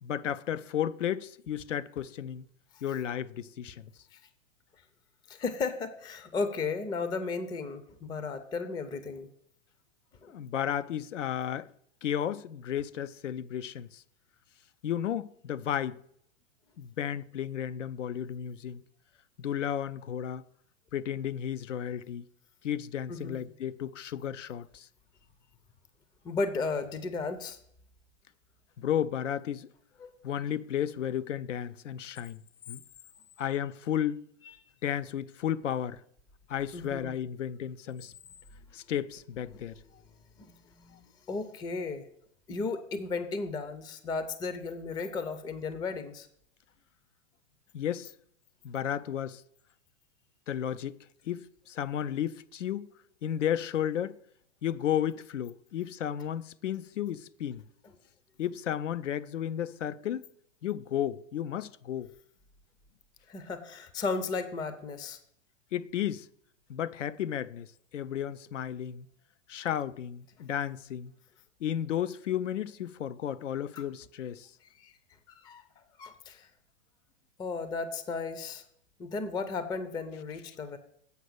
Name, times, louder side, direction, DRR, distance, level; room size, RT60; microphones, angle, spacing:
voice 1, 0.0-2.5 2.8-3.9 10.2-11.7 12.0-14.0 14.8-16.0 16.8-18.8 19.4-20.4 20.9-22.2 22.6-24.9 28.8-29.7 30.2-32.4 32.7-32.8 33.4-34.2 34.8-36.0 36.5-38.1 38.7-39.8 47.7-48.1 48.6-49.4 50.5-51.0 51.3-52.9 53.2-54.2 54.6-57.6 58.4-60.2 60.6-62.1 65.7-66.3 66.7-67.7 67.9-69.1 69.5-71.1 71.6-74.5, left 10 dB, 90° left, 0.5 m, -33 dB
voice 2, 5.3-9.3 23.1-23.4 26.2-27.6 30.0-30.1 36.7-37.2 39.5-39.7 40.4-42.1 42.5-46.3 63.3-65.2 73.8-73.9 74.6-74.9 75.3-76.5 77.4-78.6 79.0-80.8, left 4 dB, 10° left, 0.4 m, -35 dB
8.2 x 5.5 x 6.5 m
hypercardioid pair, 120°, 36 cm